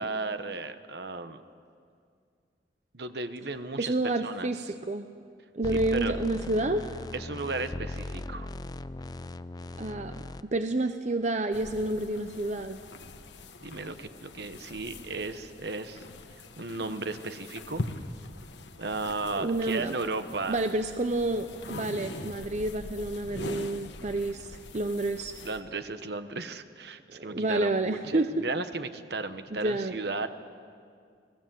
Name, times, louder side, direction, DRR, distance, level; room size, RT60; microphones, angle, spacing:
voice 1, 0.0-1.4 2.9-4.5 5.7-6.2 7.1-8.5 13.6-16.0 16.6-17.8 18.8-20.6 25.4-30.3, right 3 dB, 65° right, 10 dB, 1.2 m, -35 dB
voice 2, 3.8-5.1 5.5-7.0 9.8-10.1 10.4-12.8 19.3-20.0 20.5-25.3 27.1-28.4 29.5-30.0, right 2 dB, 40° right, 8 dB, 0.8 m, -29 dB
sound 1, 5.6-10.4, left 2 dB, 20° left, 0.5 m, -38 dB
sound 2, 11.5-25.6, left 2 dB, 80° left, 1.3 m, -43 dB
28.5 x 19.0 x 7.7 m, 2.3 s
head